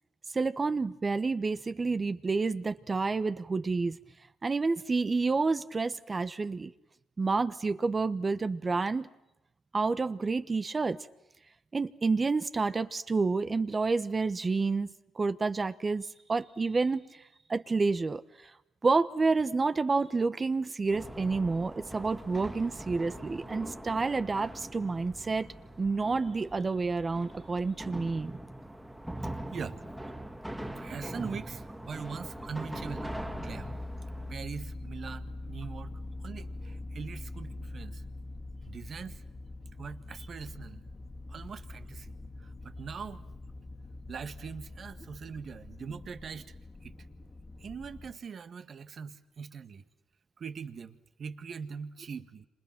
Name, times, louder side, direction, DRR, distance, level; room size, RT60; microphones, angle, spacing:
voice 1, 0.3-4.0 4.4-6.7 7.2-9.1 9.7-11.0 11.7-17.1 17.5-18.5 18.8-25.5 25.8-28.3, right 4 dB, 30° right, 12 dB, 1.1 m, -29 dB
sound 1, 20.9-34.3, right 1 dB, 5° right, 2.4 m, -42 dB
voice 2, 30.8-33.7 34.3-35.9 36.2-38.0 38.7-39.2 39.8-40.8 41.3-42.2 42.4-43.2 44.1-46.5 46.8-46.9 47.6-49.8 50.4-52.5, right 6 dB, 50° right, 10 dB, 1.8 m, -42 dB
sound 2, 31.9-48.1, left 2 dB, 30° left, 2.4 m, -43 dB
30.0 x 27.0 x 6.1 m, 0.91 s
cardioid pair, 90°, 0 cm